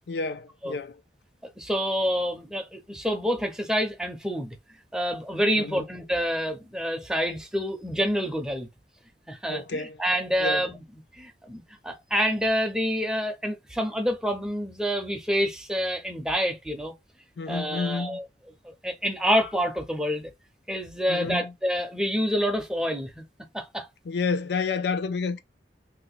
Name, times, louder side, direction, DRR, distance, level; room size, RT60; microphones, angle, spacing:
voice 1, 0.1-1.0 5.6-5.8 9.5-10.0 10.4-10.7 17.4-18.2 21.1-21.5 24.0-25.4, left 4 dB, 65° left, 0.4 m, -30 dB
voice 2, 1.6-4.6 4.9-8.7 9.3-10.8 11.1-16.9 17.5-18.2 18.6-20.3 20.7-23.2 23.5-23.9, equal, 5° right, 0.6 m, -27 dB
2.8 x 2.2 x 4.0 m
head